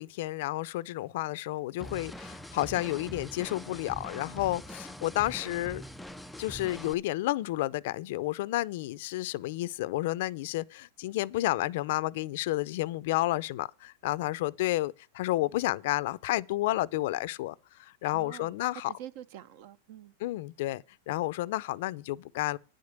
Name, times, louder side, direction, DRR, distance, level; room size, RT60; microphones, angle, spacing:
voice 1, 0.0-5.8 6.4-18.9 20.2-22.6, left 17 dB, 60° left, 0.6 m, -31 dB
sound 1, 1.8-6.9, equal, ahead, 0.4 m, -43 dB
voice 2, 18.0-20.1, right 11 dB, 55° right, 1.1 m, -46 dB
10.5 x 5.1 x 8.1 m
supercardioid pair, 160°, 0 cm